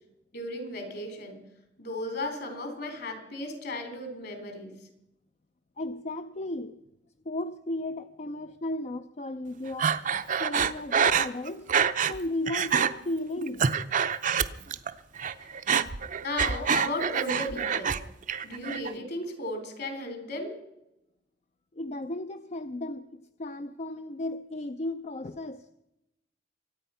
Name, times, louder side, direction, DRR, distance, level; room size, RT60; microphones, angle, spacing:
voice 1, 0.3-1.4 1.8-4.8 16.2-18.0 18.4-20.6, left 1 dB, 60° left, 6 dB, 3.6 m, -35 dB
voice 2, 5.8-6.8 7.3-9.9 10.4-11.7 12.1-13.7 21.7-25.7, left 1 dB, 40° left, 10 dB, 0.5 m, -35 dB
Breathing, 9.8-12.2 12.5-12.9 13.4-14.9 15.2-18.0 18.3-18.9, right 7 dB, 45° right, 0.6 m, -26 dB
24.0 x 9.0 x 5.7 m, 0.90 s
head